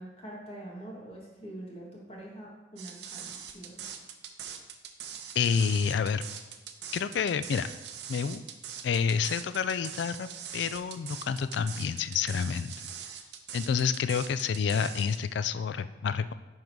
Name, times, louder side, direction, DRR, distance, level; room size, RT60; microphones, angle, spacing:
voice 1, 0.0-3.8, right 1 dB, 30° left, -4 dB, 1.7 m, -44 dB
sound 1, 2.8-15.2, right 8 dB, 60° right, 0.7 m, -42 dB
voice 2, 5.3-6.2 6.9-7.7 8.1-8.4 8.8-10.3 10.5-12.9 13.5-16.3, left 6 dB, 65° left, 13 dB, 0.3 m, -29 dB
10.5 x 3.8 x 4.6 m, 1.2 s
head